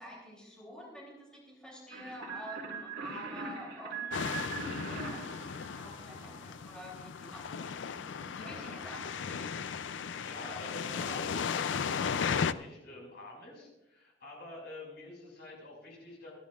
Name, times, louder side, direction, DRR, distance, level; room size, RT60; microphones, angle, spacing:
voice 1, 0.0-4.6 4.8-9.6, equal, 5° left, -3 dB, 3.1 m, -48 dB
sound 1, 1.9-6.4, right 5 dB, 80° right, 2.9 m, -41 dB
sound 2, 4.1-12.5, left 6 dB, 80° left, 0.5 m, -36 dB
sound 3, 5.4-12.4, left 1 dB, 45° left, 5.6 m, -56 dB
voice 2, 8.4-8.7 10.2-16.3, left 1 dB, 60° left, -2 dB, 5.6 m, -48 dB
27.5 x 10.5 x 2.4 m, 0.95 s
head